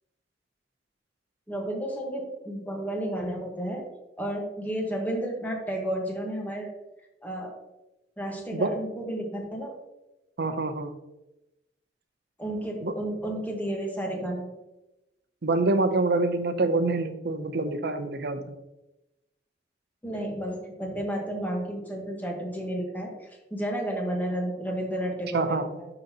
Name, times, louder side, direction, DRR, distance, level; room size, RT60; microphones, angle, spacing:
voice 1, 1.5-3.9 4.2-6.7 7.2-7.5 8.2-9.8 12.4-14.5 20.0-25.9, right 1 dB, 10° left, 0 dB, 1.3 m, -32 dB
voice 2, 10.4-10.9 12.8-12.9 15.4-18.5 25.3-25.7, right 3 dB, 65° right, 9 dB, 0.6 m, -26 dB
11.5 x 3.9 x 2.8 m, 0.96 s
head